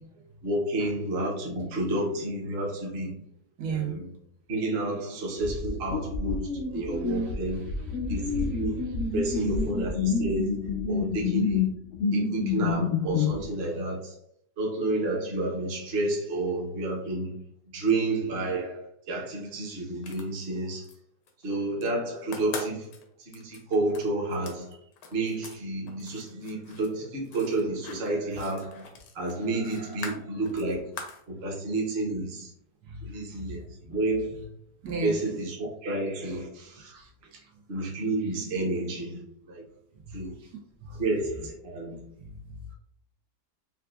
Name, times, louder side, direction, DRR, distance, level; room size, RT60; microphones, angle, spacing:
voice 1, 0.4-3.1 3.6-4.1 4.5-7.6 8.1-8.9 9.1-11.6 12.1-14.2 14.6-17.4 17.7-20.9 21.4-22.9 23.2-24.8 25.1-30.9 31.3-32.5 33.0-34.5 35.0-36.9 37.7-39.6 40.1-40.3 41.0-42.0, right 2 dB, 45° right, 0.9 m, -30 dB
voice 2, 3.6-4.1 7.1-7.3 7.8-7.9 8.2-8.3 32.8-33.5 33.8-33.9 34.8-35.2 36.8-37.5 40.1-41.0 42.2-42.7, right 4 dB, 80° right, 1.3 m, -38 dB
sound 1, 5.4-13.4, left 5 dB, 75° left, 0.7 m, -28 dB
sound 2, 19.9-21.0 21.3-21.9 22.2-25.6 25.9-31.3, left 5 dB, 90° left, 1.3 m, -43 dB
4.7 x 2.3 x 2.3 m
omnidirectional pair, 1.8 m